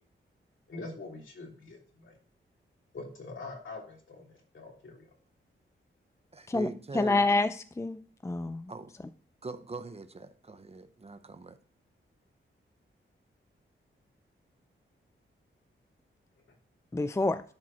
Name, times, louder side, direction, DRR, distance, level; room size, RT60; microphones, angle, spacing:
voice 1, 0.7-2.1 2.9-5.1, left 3 dB, 65° left, 3.4 m, -44 dB
voice 2, 6.3-7.3 8.7-8.9 9.4-11.6, right 3 dB, 30° right, 0.7 m, -42 dB
voice 3, 6.9-8.7 16.9-17.4, left 2 dB, 15° left, 0.4 m, -28 dB
11.5 x 4.7 x 4.2 m
wide cardioid pair, 90°, 21 cm